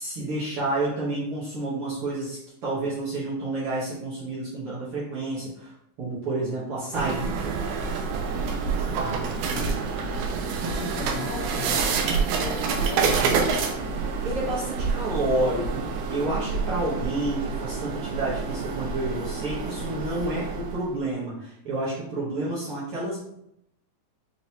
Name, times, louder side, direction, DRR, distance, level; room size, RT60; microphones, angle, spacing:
voice 1, 0.0-5.7 6.0-7.3 14.2-15.8 16.1-23.2, right 2 dB, 60° right, -7 dB, 1.6 m, -29 dB
sound 1, 6.9-20.9, right 5 dB, 80° right, 2.1 m, -28 dB
voice 2, 8.6-9.8 10.6-11.8 12.3-13.5, left 4 dB, 70° left, -4 dB, 1.7 m, -36 dB
5.9 x 2.9 x 2.8 m, 0.76 s
omnidirectional pair, 3.7 m